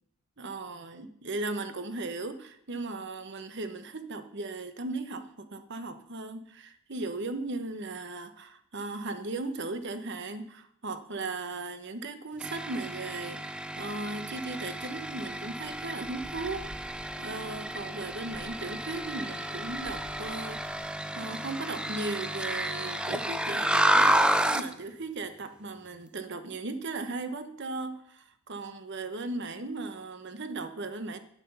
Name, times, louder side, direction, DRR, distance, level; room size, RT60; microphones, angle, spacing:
voice 1, 0.4-16.6 17.2-31.2, right 3 dB, 55° right, 10 dB, 1.0 m, -37 dB
sound 1, 12.4-24.7, right 1 dB, 5° right, 0.4 m, -30 dB
sound 2, 13.6-20.9, equal, 15° left, 1.1 m, -52 dB
8.8 x 8.3 x 6.8 m, 0.70 s
head